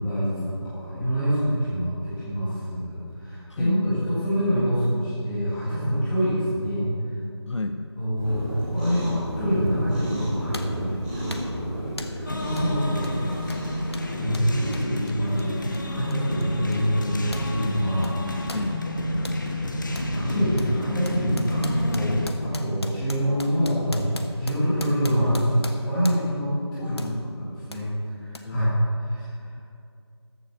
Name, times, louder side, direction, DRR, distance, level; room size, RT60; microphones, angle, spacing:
voice 1, 0.0-6.9 8.0-13.4 13.8-15.6 15.9-18.6 19.1-19.3 19.8-27.0 27.4-27.9 28.2-28.7 29.0-29.5, equal, 5° left, -12 dB, 1.8 m, -26 dB
voice 2, 7.5-7.9 14.5-14.6 18.5-18.8 26.8-27.3 28.4-28.9, left 3 dB, 85° left, 8 dB, 0.6 m, -32 dB
Cat, 8.2-14.8, equal, 15° right, 3.3 m, -33 dB
sound 1, 9.7-9.8 10.5-10.8 11.3-11.6 12.0-12.2 12.6-12.7 13.0-17.5 17.8-19.4 19.9-20.1 20.6-26.4 27.0-27.2 27.7-27.8 28.3-28.4, left 2 dB, 65° left, 1.1 m, -41 dB
sound 2, 12.3-22.3, left 1 dB, 45° left, 1.2 m, -29 dB
13.5 x 7.8 x 5.9 m, 2.4 s
figure-of-eight pair, 170°, 15 cm